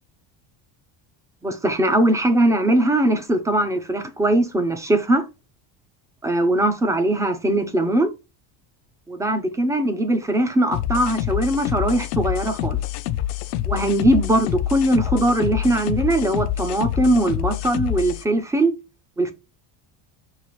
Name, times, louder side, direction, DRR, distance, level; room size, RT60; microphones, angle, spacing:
voice 1, 1.4-5.2 6.2-8.1 9.1-12.8 13.6-18.7 19.2-19.3, right 1 dB, 5° right, 0.4 m, -20 dB
sound 1, 10.7-18.2, left 12 dB, 65° left, 0.5 m, -26 dB
5.6 x 2.5 x 3.0 m
cardioid pair, 145°, 46 cm